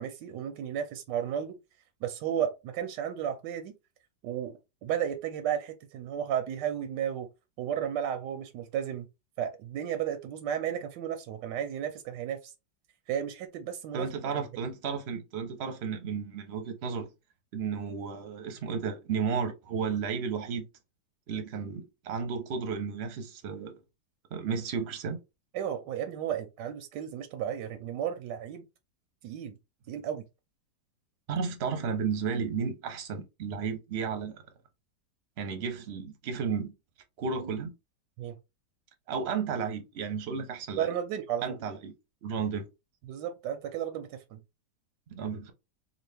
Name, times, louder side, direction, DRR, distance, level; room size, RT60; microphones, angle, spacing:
voice 1, 0.0-1.6 2.0-3.7 4.2-7.3 7.6-9.1 9.4-12.5 13.1-14.1 14.3-14.4 25.5-28.7 29.2-29.5 29.9-30.2 38.2-38.4 40.7-41.6 43.1-44.4, right 9 dB, 85° right, 1.3 m, -33 dB
voice 2, 13.9-17.1 17.5-20.7 21.3-23.8 24.3-25.2 31.3-34.4 35.4-36.7 37.2-37.7 39.1-41.0 41.4-41.9 42.2-42.7 45.1-45.5, right 6 dB, 50° right, 0.8 m, -33 dB
3.8 x 2.3 x 3.3 m
omnidirectional pair, 1.8 m